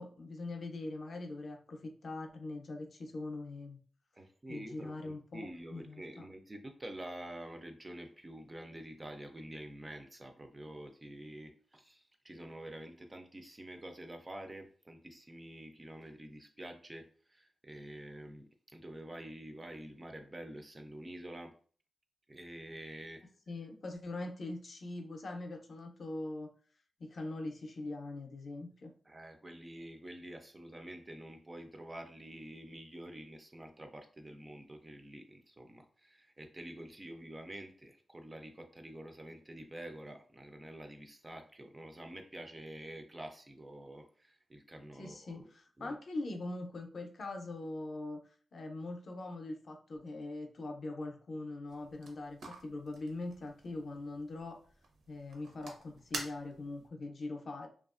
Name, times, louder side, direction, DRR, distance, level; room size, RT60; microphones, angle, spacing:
voice 1, 0.0-3.8 4.5-6.3 23.5-26.5 27.0-28.9 44.9-54.6 55.1-57.7, left 2 dB, 50° left, 3 dB, 0.5 m, -42 dB
voice 2, 4.2-21.5 22.3-23.2 29.1-45.5 45.8-46.0, right 1 dB, 20° right, 4 dB, 0.3 m, -48 dB
sound 1, 51.7-56.9, right 2 dB, 85° right, 0.6 m, -48 dB
2.8 x 2.3 x 2.4 m, 0.43 s
wide cardioid pair, 160°, 0 cm